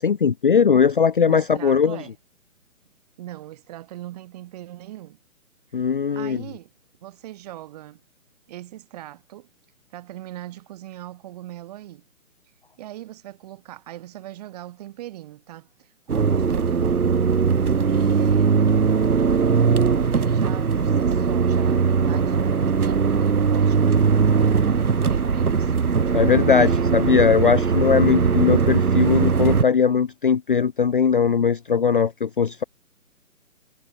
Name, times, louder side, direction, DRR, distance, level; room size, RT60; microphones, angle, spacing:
voice 1, 0.0-2.0 5.7-6.4 26.1-32.6, left 6 dB, 40° left, 0.6 m, -19 dB
voice 2, 1.2-2.1 3.2-5.2 6.1-6.7 7.0-8.0 8.5-9.5 9.9-12.1 12.8-17.3 17.8-18.5 19.1-26.9, right 14 dB, 25° right, 6.1 m, -40 dB
sound 1, 16.1-29.6, right 5 dB, 90° right, 1.8 m, -20 dB
hypercardioid pair, 160°, 43 cm